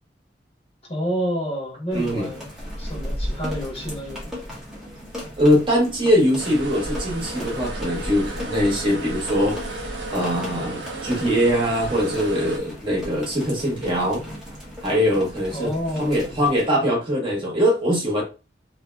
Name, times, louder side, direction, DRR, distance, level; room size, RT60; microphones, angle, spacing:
voice 1, 0.8-2.5 2.8-4.3 15.5-16.4, equal, 35° left, 1.2 m, -29 dB
sound 1, 1.9-16.7, equal, 5° right, 0.9 m, -35 dB
voice 2, 1.9-2.3 5.4-14.2 14.8-15.7 16.0-18.2, equal, 30° right, 1.1 m, -22 dB
sound 2, 6.4-12.6, right 2 dB, 70° right, 0.7 m, -35 dB
2.7 x 2.7 x 2.2 m
head